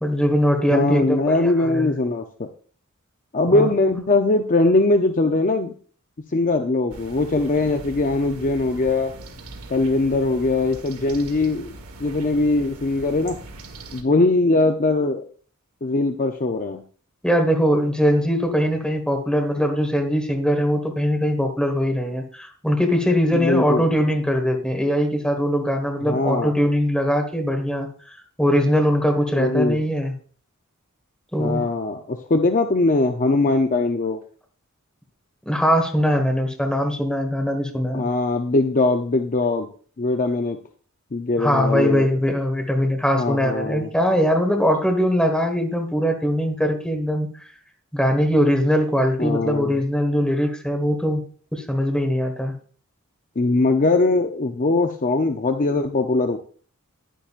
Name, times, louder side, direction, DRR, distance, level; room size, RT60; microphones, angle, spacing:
voice 1, 0.0-1.9 3.5-3.7 17.2-27.9 28.4-30.1 31.3-31.7 35.4-38.1 41.4-47.3 47.9-51.2 51.5-52.5, equal, 5° left, 3 dB, 1.6 m, -21 dB
voice 2, 0.7-2.5 3.3-5.7 6.3-9.1 9.7-11.7 12.0-13.4 13.9-15.2 15.8-16.8 23.3-23.9 26.1-26.5 29.4-29.8 31.4-34.2 37.9-39.7 40.0-40.6 41.1-42.1 43.1-43.9 49.2-49.8 53.4-56.4, left 2 dB, 40° left, 5 dB, 0.6 m, -21 dB
sound 1, 6.9-14.0, right 2 dB, 90° right, 1.5 m, -40 dB
10.5 x 10.0 x 2.5 m, 0.44 s
head